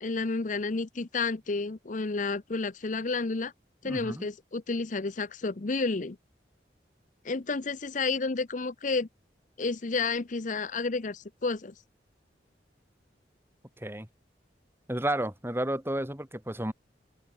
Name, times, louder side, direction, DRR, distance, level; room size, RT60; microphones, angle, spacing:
voice 1, 0.0-3.5 3.8-6.2 7.2-9.1 9.6-11.7, left 3 dB, 45° left, 0.7 m, -31 dB
voice 2, 3.8-4.3 13.8-14.1 14.9-16.7, right 1 dB, 15° right, 3.3 m, -31 dB
open air
head